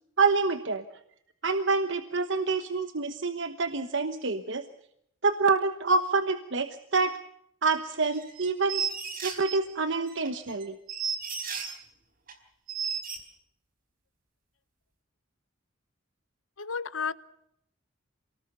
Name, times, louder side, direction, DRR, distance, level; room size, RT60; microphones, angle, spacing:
voice 1, 0.2-0.8 1.4-4.6 5.2-7.2 7.6-8.8 9.2-10.8, right 4 dB, 65° right, 10 dB, 1.2 m, -27 dB
sound 1, 8.0-9.6 10.1-11.8 12.3-12.4 12.7-13.2, right 6 dB, 45° right, 4.5 m, -34 dB
voice 2, 16.6-17.1, left 5 dB, 90° left, 16 dB, 1.0 m, -32 dB
27.5 x 19.0 x 6.9 m, 0.75 s
head